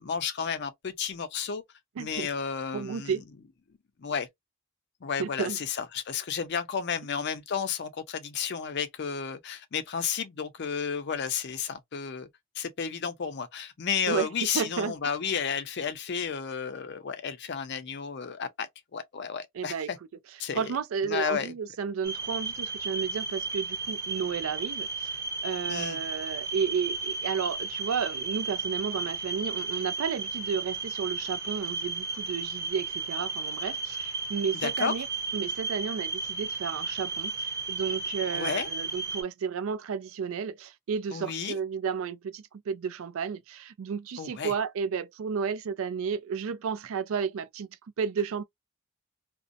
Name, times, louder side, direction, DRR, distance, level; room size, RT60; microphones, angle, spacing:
voice 1, 0.0-1.6 2.0-3.2 4.0-4.3 5.0-12.3 12.6-20.0 20.4-20.7 21.0-21.5 25.7-26.0 34.6-34.9 38.3-38.7 41.1-41.6 44.2-44.5, left 6 dB, 50° left, 0.5 m, -32 dB
voice 2, 2.0-2.3 2.7-3.2 5.2-5.6 14.1-14.3 14.5-14.9 19.6-19.9 20.5-25.2 25.4-35.1 35.3-47.7 48.0-48.4, right 6 dB, 70° right, 0.3 m, -32 dB
sound 1, 22.0-39.2, right 4 dB, 15° right, 0.8 m, -34 dB
2.5 x 2.1 x 2.5 m
head